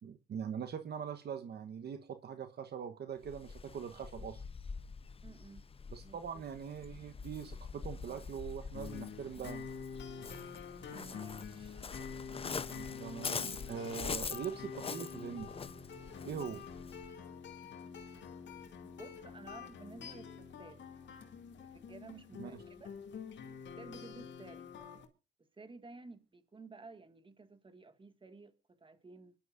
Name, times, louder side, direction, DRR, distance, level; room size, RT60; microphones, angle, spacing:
voice 1, 0.0-4.4 5.9-9.7 12.7-15.5 16.2-16.6 22.4-22.5, right 7 dB, 55° right, 1.1 m, -42 dB
Waves surf, 3.2-17.1, left 5 dB, 30° left, 0.7 m, -44 dB
voice 2, 5.2-5.6 6.0-6.4 10.9-11.9 18.8-21.0 21.6-23.0 23.8-24.7 25.4-29.3, right 3 dB, 25° right, 1.9 m, -54 dB
sound 1, 8.7-25.1, left 6 dB, 65° left, 2.4 m, -47 dB
25.0 x 11.5 x 2.6 m
cardioid pair, 90°, 20 cm